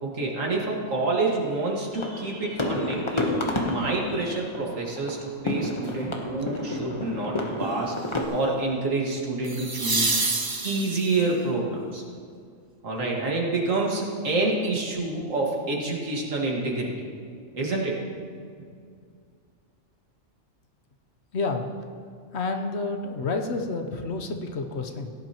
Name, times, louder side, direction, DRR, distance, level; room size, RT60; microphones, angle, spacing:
voice 1, 0.0-3.2 3.6-12.0 12.8-17.1 17.5-18.0, right 2 dB, 75° right, -1 dB, 2.1 m, -28 dB
sound 1, 1.9-8.3, left 1 dB, 25° left, 1.0 m, -31 dB
sound 2, 6.4-6.8 9.4-11.3 14.2-14.3, right 3 dB, 25° right, 0.5 m, -27 dB
voice 2, 21.3-21.7 22.3-25.1, left 3 dB, 60° left, 4 dB, 1.1 m, -29 dB
17.0 x 10.5 x 3.0 m, 2.2 s
omnidirectional pair, 1.4 m